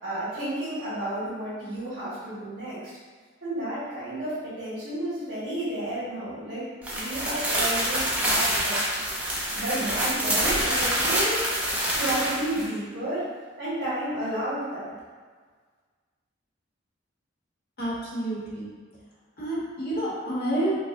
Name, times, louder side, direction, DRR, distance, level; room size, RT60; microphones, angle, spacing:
voice 1, 0.0-2.8 3.4-9.0 9.5-11.4 11.9-13.3 13.6-14.8, right 1 dB, 80° right, -13 dB, 1.4 m, -31 dB
sound 1, 6.8-12.7, equal, 5° right, 0.5 m, -26 dB
voice 2, 17.8-18.7 19.4-20.8, right 1 dB, 55° left, -6 dB, 0.9 m, -29 dB
4.7 x 2.0 x 2.5 m, 1.5 s
head